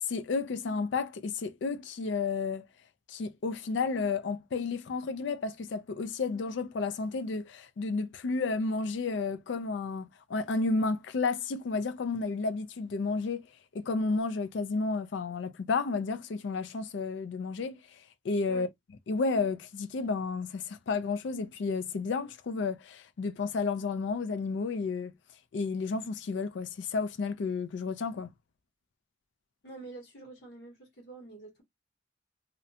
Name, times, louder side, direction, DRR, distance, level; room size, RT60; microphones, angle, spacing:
voice 1, 0.1-2.7 3.1-13.5 13.7-18.7 19.1-25.2 25.5-28.3, left 4 dB, 85° left, 0.4 m, -32 dB
voice 2, 29.6-31.6, right 3 dB, 65° left, 1.1 m, -47 dB
2.5 x 2.1 x 2.7 m
head